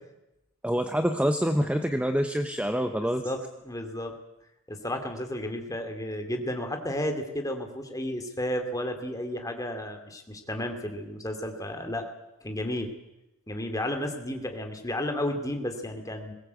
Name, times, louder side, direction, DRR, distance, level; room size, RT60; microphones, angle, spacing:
voice 1, 0.6-3.3, equal, 5° right, 7 dB, 0.8 m, -26 dB
voice 2, 2.8-3.4 3.6-4.1 4.7-12.1 12.4-12.9 13.5-16.3, left 1 dB, 15° left, 5 dB, 2.5 m, -32 dB
21.5 x 18.0 x 8.2 m, 0.94 s
head